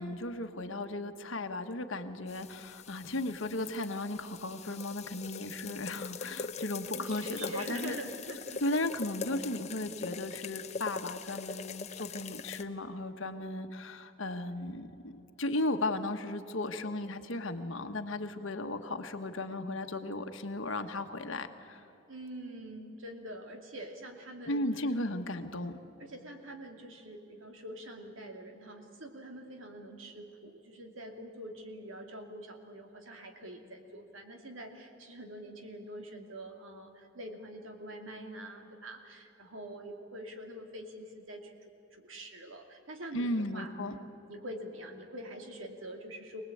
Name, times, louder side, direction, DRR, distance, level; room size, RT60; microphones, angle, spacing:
voice 1, 0.0-7.9 8.6-15.1 15.4-21.9 24.5-25.8 43.1-44.0, left 2 dB, 65° left, 7 dB, 1.4 m, -35 dB
sound 1, 2.3-12.6, left 5 dB, 30° left, 0.8 m, -42 dB
voice 2, 6.9-8.6 22.1-24.6 26.0-41.5 41.9-43.7 44.3-46.4, right 1 dB, 70° right, 3 dB, 2.5 m, -45 dB
24.5 x 19.0 x 8.6 m, 3.0 s
head